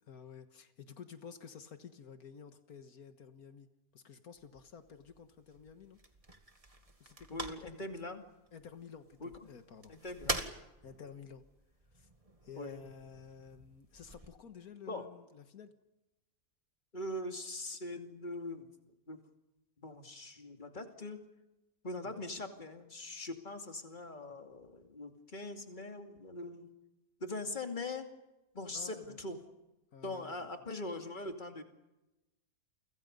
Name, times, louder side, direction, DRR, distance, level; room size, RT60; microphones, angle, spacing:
voice 1, 0.0-3.7 3.9-6.0 7.0-7.8 8.5-9.9 10.2-10.4 10.8-11.4 11.9-12.1 12.4-15.7 22.0-22.2 28.7-29.2 29.9-30.5, left 7 dB, 80° left, 8 dB, 1.9 m, -52 dB
sound 1, 4.3-14.3, right 2 dB, 25° right, 2.0 m, -46 dB
voice 2, 7.3-8.3 9.2-9.3 9.9-10.5 12.6-12.8 14.9-15.1 16.9-18.7 19.1-19.2 19.8-21.2 21.8-26.7 27.2-28.1 28.5-29.4 30.0-31.6, left 2 dB, 30° left, 5 dB, 2.6 m, -42 dB
30.0 x 25.0 x 5.4 m, 0.99 s
omnidirectional pair, 1.5 m